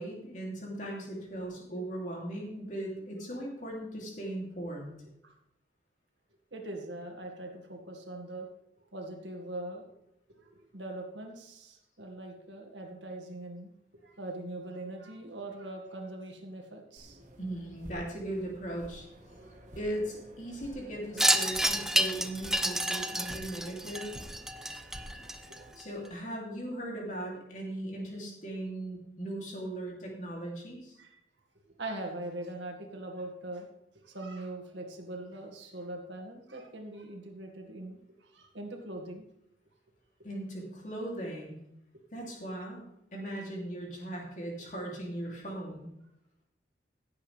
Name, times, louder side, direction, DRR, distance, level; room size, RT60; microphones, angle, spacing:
voice 1, 0.0-4.9 17.4-19.1 19.8-24.2 25.4-25.5 25.7-31.0 40.2-41.6 42.1-42.8 43.1-45.9, right 1 dB, 45° left, -2 dB, 3.0 m, -38 dB
voice 2, 6.5-8.5 8.9-9.8 10.3-17.2 25.2-25.8 31.0-31.1 31.7-33.7 33.9-39.2, right 2 dB, 90° right, 2 dB, 2.1 m, -42 dB
Foottap Slow, 17.0-25.7, equal, 45° right, 1.6 m, -50 dB
Wind chime, 21.2-25.8, right 1 dB, 5° right, 0.4 m, -29 dB
16.5 x 8.4 x 3.5 m, 0.82 s
head